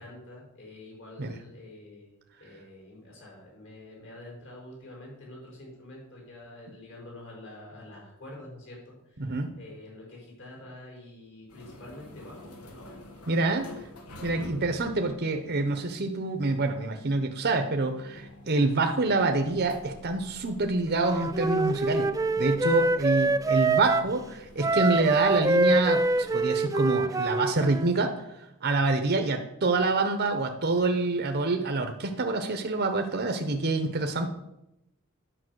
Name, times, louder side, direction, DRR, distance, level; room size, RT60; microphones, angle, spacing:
voice 1, 0.0-2.1 2.4-13.0 22.5-23.4, left 1 dB, 60° left, -2 dB, 4.7 m, -47 dB
voice 2, 9.2-9.5 13.3-13.7 14.2-22.1 22.4-28.1 28.6-34.3, right 3 dB, 50° right, 5 dB, 0.9 m, -26 dB
sound 1, 11.5-26.5, left 1 dB, 90° left, 1.7 m, -49 dB
Wind instrument woodwind instrument, 21.0-24.1 24.6-27.9, right 2 dB, 15° right, 0.4 m, -25 dB
10.0 x 5.5 x 7.9 m, 0.87 s
head